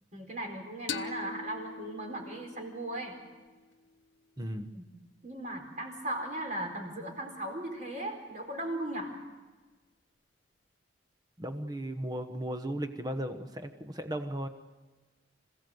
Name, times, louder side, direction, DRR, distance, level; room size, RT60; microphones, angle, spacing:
voice 1, 0.1-3.2 4.7-4.8 5.2-9.1, right 1 dB, 40° right, 2 dB, 4.5 m, -37 dB
sound 1, 0.9-4.2, left 5 dB, 75° left, 0.9 m, -43 dB
voice 2, 4.4-4.7 11.4-14.5, right 1 dB, 20° right, 8 dB, 1.1 m, -36 dB
27.0 x 16.0 x 7.9 m, 1.3 s
head